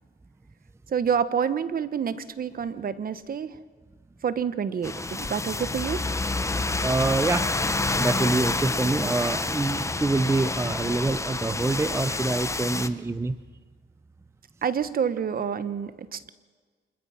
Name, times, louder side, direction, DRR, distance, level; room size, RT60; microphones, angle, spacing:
voice 1, 0.9-3.5 4.2-6.0 14.6-16.3, right 7 dB, 45° right, 14 dB, 1.1 m, -28 dB
sound 1, 4.8-12.9, left 3 dB, 15° left, 0.9 m, -28 dB
voice 2, 6.8-13.4, right 3 dB, 15° right, 14 dB, 0.6 m, -26 dB
27.0 x 21.5 x 5.8 m, 1.5 s
cardioid pair, 90°, 20 cm